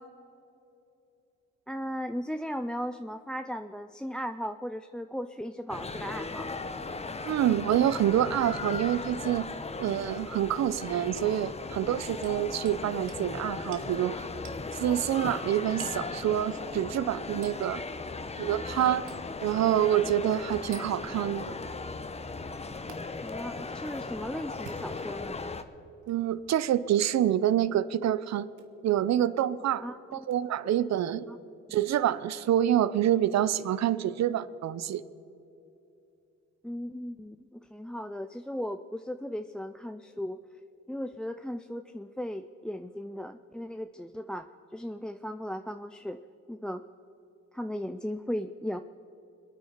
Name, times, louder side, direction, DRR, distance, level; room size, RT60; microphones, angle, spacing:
voice 1, 1.7-6.5 23.2-25.4 29.8-30.3 31.3-31.4 36.6-40.4 40.9-46.2 46.5-46.8 47.5-48.8, equal, 5° left, 9 dB, 0.4 m, -37 dB
sound 1, 5.7-25.6, left 3 dB, 20° left, 0.9 m, -37 dB
voice 2, 7.2-9.5 9.8-14.2 14.7-17.8 18.4-19.0 19.4-21.6 26.1-28.5 28.8-29.8 30.1-31.3 31.7-35.0, right 11 dB, 60° right, 16 dB, 0.7 m, -27 dB
Hammer, 12.2-12.8 13.1-13.3 13.7-13.9 14.4-14.6 15.8-16.1 17.4-17.6 19.1-19.3 20.7-20.9 22.9-23.0 24.5-25.3 26.0-26.2 27.4-27.6 28.5-28.7 30.3-30.4, right 6 dB, 80° right, 1.5 m, -48 dB
26.0 x 9.3 x 5.1 m, 2.8 s
cardioid pair, 90°, 30 cm